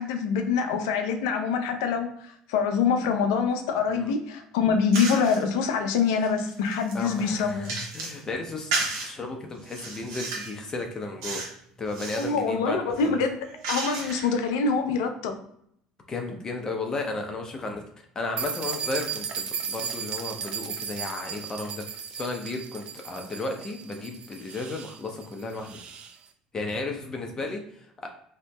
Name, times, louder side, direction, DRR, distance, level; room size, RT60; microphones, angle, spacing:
voice 1, 0.0-7.7 12.2-13.4 13.7-15.4, left 5 dB, 80° left, 6 dB, 0.4 m, -25 dB
sound 1, 4.9-5.4 6.0-8.2 8.7-9.1 9.6-10.6 11.2-11.6 11.9-12.3 12.9-14.4, right 3 dB, 85° right, 0.8 m, -33 dB
voice 2, 6.9-11.4 11.8-13.2 16.1-17.8 18.2-21.8 22.2-25.8 26.5-27.6, left 2 dB, 30° left, 3 dB, 0.5 m, -34 dB
sound 2, 18.4-26.1, right 7 dB, 50° right, 0.4 m, -35 dB
2.8 x 2.6 x 2.2 m, 0.71 s
supercardioid pair, 85°, 2 cm